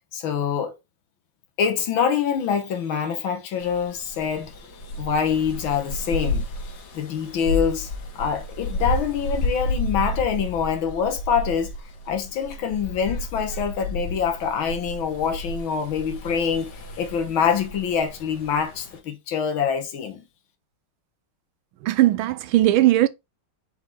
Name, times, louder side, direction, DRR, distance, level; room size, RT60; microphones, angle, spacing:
voice 1, 0.1-0.8 1.6-4.6 4.9-6.4 6.9-11.7 12.1-16.7 17.0-20.2, left 7 dB, 75° left, 1.8 m, -25 dB
sound 1, 3.6-19.0, left 1 dB, 55° left, 2.0 m, -32 dB
voice 2, 21.8-23.1, right 15 dB, 80° right, 1.3 m, -18 dB
5.5 x 3.8 x 4.6 m
omnidirectional pair, 2.3 m